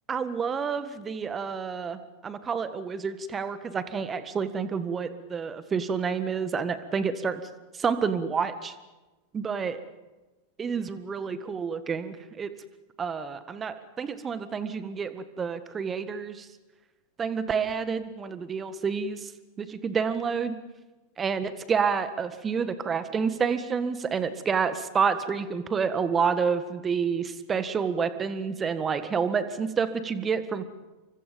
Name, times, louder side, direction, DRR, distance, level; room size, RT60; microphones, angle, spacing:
voice 1, 0.1-7.4 7.7-8.7 9.3-9.8 10.6-12.5 13.0-16.5 17.2-19.3 19.6-20.6 21.2-30.7, right 6 dB, 20° right, 12 dB, 1.6 m, -29 dB
29.0 x 24.5 x 5.3 m, 1.1 s
figure-of-eight pair, 90°, 0 cm